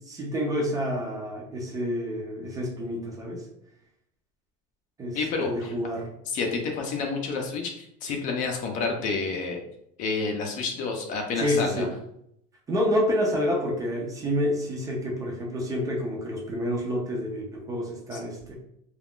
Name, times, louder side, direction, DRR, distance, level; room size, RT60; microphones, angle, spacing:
voice 1, 0.1-3.5 5.0-5.2 5.4-6.0 11.4-11.9 12.7-18.5, equal, 15° right, -1 dB, 0.5 m, -28 dB
voice 2, 5.1-5.7 6.3-9.6 10.0-11.9 18.1-18.2, left 4 dB, 40° left, 2 dB, 0.5 m, -29 dB
2.3 x 2.3 x 3.5 m, 0.76 s
cardioid pair, 160°, 21 cm